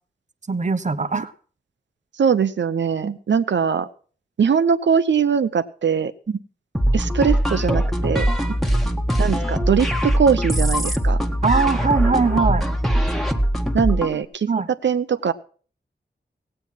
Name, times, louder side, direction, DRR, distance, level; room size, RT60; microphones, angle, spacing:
voice 1, 0.5-1.3 3.0-3.2 6.3-6.4 11.4-12.6 14.5-14.7, right 4 dB, 40° right, 11 dB, 1.0 m, -21 dB
voice 2, 2.2-3.9 4.4-6.1 6.9-8.3 9.2-11.2 13.7-14.5 14.8-15.3, right 6 dB, 85° right, 12 dB, 0.7 m, -21 dB
sound 1, 6.7-14.2, equal, ahead, 1.3 m, -21 dB
16.5 x 8.8 x 6.0 m, 0.43 s
wide cardioid pair, 95°, 18 cm